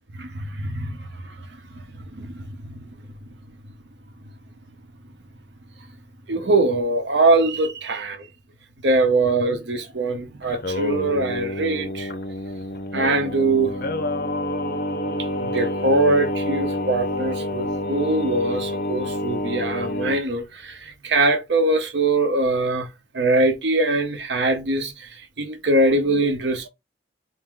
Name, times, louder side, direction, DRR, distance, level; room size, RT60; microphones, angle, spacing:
voice 1, 0.2-1.0 2.1-2.4 6.3-8.2 8.8-12.1 12.9-13.7 15.4-22.9 23.1-24.9 25.4-26.7, right 2 dB, 70° right, 0.8 m, -22 dB
Singing, 10.4-20.2, left 1 dB, 55° left, 0.6 m, -28 dB
3.5 x 2.7 x 3.7 m
head